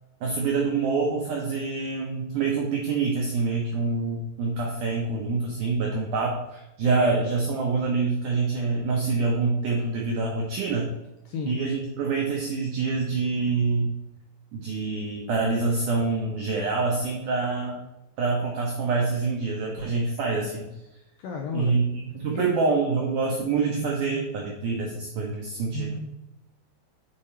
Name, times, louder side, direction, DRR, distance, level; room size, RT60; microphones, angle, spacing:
voice 1, 0.2-10.9 11.5-13.9 14.5-17.8 18.2-20.7 21.5-26.0, right 4 dB, 80° right, -1 dB, 1.8 m, -26 dB
voice 2, 11.3-11.6 21.2-21.8 22.3-22.5, left 5 dB, 85° left, 2 dB, 2.0 m, -32 dB
7.2 x 4.7 x 4.3 m, 0.97 s
omnidirectional pair, 4.7 m